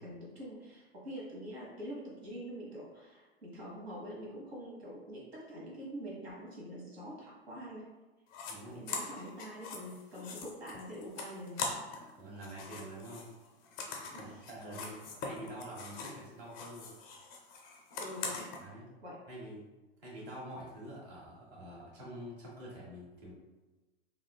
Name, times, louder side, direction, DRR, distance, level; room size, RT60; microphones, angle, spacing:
voice 1, 0.0-7.9 8.6-11.6 14.1-14.5 14.7-15.0 18.0-18.5 19.0-19.2, equal, 70° right, -4 dB, 1.2 m, -45 dB
sound 1, 8.3-8.5 8.9-12.1 12.4-16.2 16.5-18.6, left 4 dB, 30° left, 0.4 m, -42 dB
voice 2, 8.5-8.8 12.1-13.3 14.2-16.9 18.6-18.9 19.3-19.6 20.0-23.3, right 1 dB, 50° right, -5 dB, 1.3 m, -46 dB
3.5 x 2.4 x 2.2 m, 1.1 s
figure-of-eight pair, 90°, 32 cm